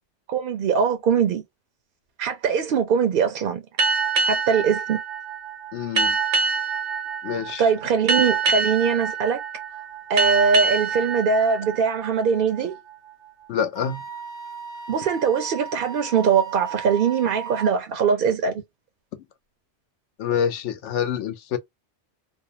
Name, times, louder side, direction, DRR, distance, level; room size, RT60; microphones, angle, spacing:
voice 1, 0.3-1.4 2.2-3.6 4.3-5.0 7.6-9.4 10.1-12.8 14.9-18.6, right 6 dB, 60° right, 0.6 m, -22 dB
sound 1, 3.8-12.9, right 4 dB, 90° right, 1.0 m, -26 dB
voice 2, 5.7-6.2 7.2-7.7 13.5-14.0 20.2-21.6, left 8 dB, 75° left, 0.9 m, -26 dB
Wind instrument woodwind instrument, 13.7-17.7, right 7 dB, 45° left, 0.3 m, -36 dB
2.6 x 2.0 x 2.7 m
omnidirectional pair, 1.2 m